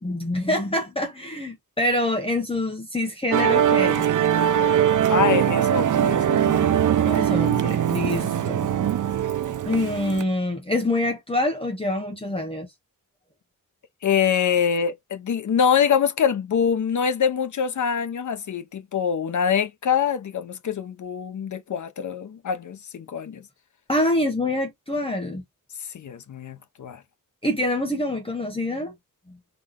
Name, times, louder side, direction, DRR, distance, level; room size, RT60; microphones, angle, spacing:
voice 1, 0.0-4.1 7.0-9.1 9.6-12.7 23.9-25.4 27.4-28.9, left 1 dB, 15° left, 1.1 m, -26 dB
Musical instrument, 3.3-10.2, right 9 dB, 60° right, 0.5 m, -21 dB
voice 2, 5.1-6.8 14.0-23.4 25.9-27.0, left 7 dB, 55° left, 0.7 m, -24 dB
3.9 x 3.1 x 3.6 m
wide cardioid pair, 165°, 36 cm